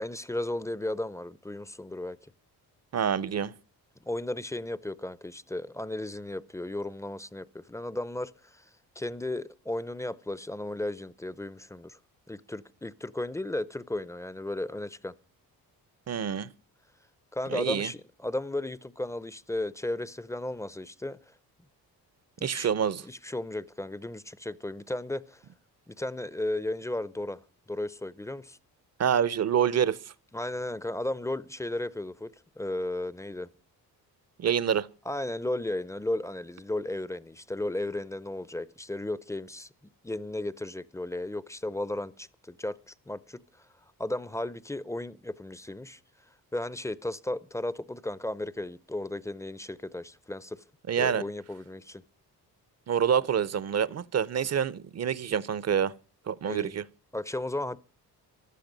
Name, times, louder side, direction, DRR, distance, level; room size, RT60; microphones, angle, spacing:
voice 1, 0.0-2.2 4.1-8.6 9.0-12.0 12.3-15.1 17.3-21.2 22.4-22.7 23.0-25.4 25.9-27.4 27.7-28.6 30.3-33.5 35.1-39.7 40.0-43.4 44.0-46.0 46.5-50.6 51.0-52.0 56.4-56.7 57.1-57.8, left 1 dB, 10° left, 0.6 m, -34 dB
voice 2, 2.9-3.5 16.1-16.5 17.5-17.9 22.4-23.0 29.0-30.0 34.4-34.9 50.9-51.2 52.9-55.9 56.3-56.8, right 8 dB, 45° right, 0.7 m, -27 dB
15.0 x 11.5 x 5.2 m
cardioid pair, 80°, 38 cm